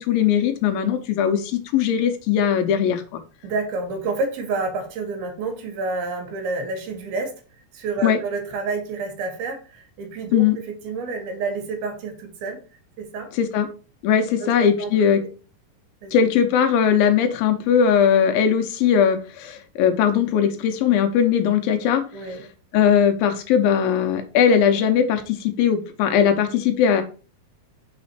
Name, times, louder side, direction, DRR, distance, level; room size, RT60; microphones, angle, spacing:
voice 1, 0.0-3.2 8.0-8.2 10.3-10.6 13.4-13.7 14.0-15.2 16.1-22.0 22.7-27.0, left 8 dB, 80° left, 6 dB, 2.6 m, -19 dB
voice 2, 3.4-7.3 7.7-12.6 13.0-13.3 14.4-14.5 14.8-15.1 16.0-16.2 22.1-22.5, right 3 dB, 85° right, 5 dB, 3.2 m, -29 dB
6.1 x 4.2 x 4.3 m, 0.36 s
omnidirectional pair, 4.3 m